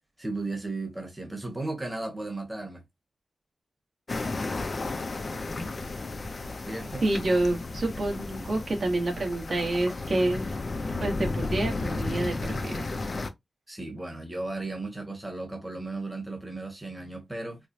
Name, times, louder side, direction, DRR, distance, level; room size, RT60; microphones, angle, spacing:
voice 1, 0.2-2.8 6.7-7.0 13.7-17.6, right 2 dB, 10° right, 1.1 m, -35 dB
sound 1, 4.1-13.3, left 3 dB, 40° left, 0.6 m, -33 dB
voice 2, 7.0-10.5 11.0-12.9, right 2 dB, 50° right, 1.3 m, -28 dB
4.7 x 2.2 x 2.7 m
wide cardioid pair, 120°, 0 cm